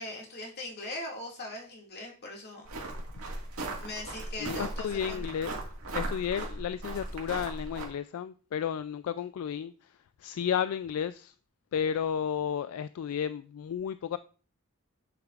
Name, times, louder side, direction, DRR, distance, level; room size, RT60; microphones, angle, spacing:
voice 1, 0.0-2.7 3.8-5.2, left 2 dB, 50° left, 2.2 m, -40 dB
sound 1, 2.6-7.9, right 2 dB, 80° right, 1.9 m, -37 dB
voice 2, 4.4-5.5 5.9-11.3 11.7-14.2, left 8 dB, 75° left, 0.3 m, -33 dB
8.2 x 6.8 x 2.4 m
head